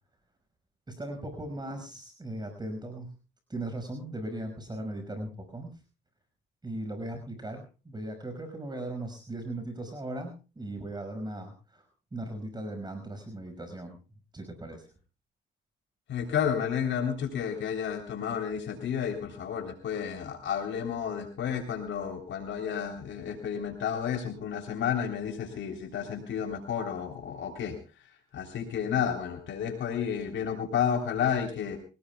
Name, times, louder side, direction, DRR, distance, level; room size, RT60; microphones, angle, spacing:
voice 1, 0.9-3.2 3.5-5.8 6.6-11.9 12.1-14.0 14.3-14.9, right 1 dB, 20° right, 5 dB, 5.7 m, -38 dB
voice 2, 16.1-27.8 28.3-31.8, left 8 dB, 70° left, 5 dB, 3.6 m, -31 dB
25.5 x 18.5 x 2.3 m, 0.35 s
cardioid pair, 90°, 20 cm